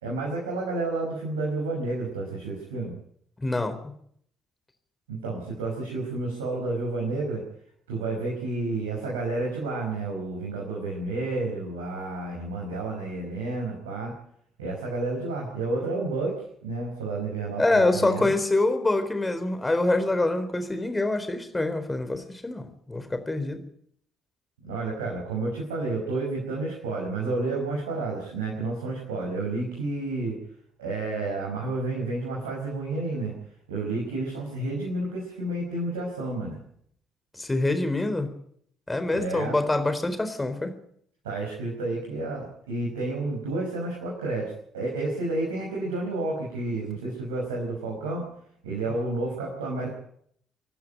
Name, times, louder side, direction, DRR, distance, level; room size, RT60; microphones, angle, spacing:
voice 1, 0.0-2.9 5.1-7.4 7.9-14.2 14.6-18.3 24.6-30.4 30.8-33.3 33.7-36.6 39.1-39.6 41.2-48.3 48.6-49.9, right 2 dB, 80° right, -2 dB, 5.2 m, -30 dB
voice 2, 3.4-3.8 17.6-23.6 37.3-38.3 38.9-40.8, left 2 dB, 15° left, 9 dB, 4.0 m, -25 dB
26.0 x 12.0 x 9.1 m, 0.67 s
figure-of-eight pair, 45°, 0 cm